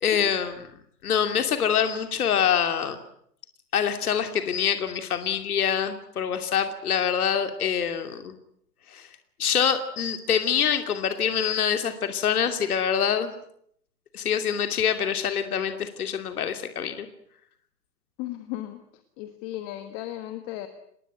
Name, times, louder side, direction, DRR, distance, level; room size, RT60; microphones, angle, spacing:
voice 1, 0.0-0.6 1.0-3.0 3.7-8.3 8.9-9.1 9.4-13.3 14.1-17.1, left 8 dB, 60° left, 7 dB, 2.8 m, -25 dB
voice 2, 18.2-18.8 19.2-20.7, left 14 dB, 20° left, 9 dB, 1.5 m, -35 dB
27.5 x 21.0 x 9.3 m, 0.70 s
hypercardioid pair, 155°, 49 cm